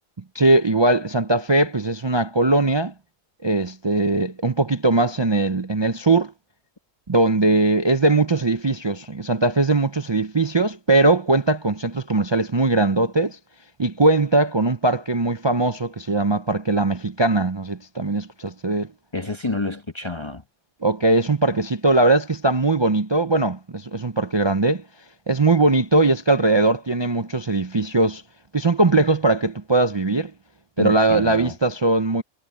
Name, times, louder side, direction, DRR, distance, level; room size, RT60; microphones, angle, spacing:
voice 1, 0.3-2.9 3.4-6.3 7.1-13.4 13.8-18.9 20.8-24.8 25.3-28.2 28.5-30.3 30.8-32.2, right 2 dB, 40° right, 0.3 m, -20 dB
voice 2, 19.1-20.4 30.8-31.6, left 3 dB, 20° left, 1.2 m, -29 dB
omnidirectional pair, 1.5 m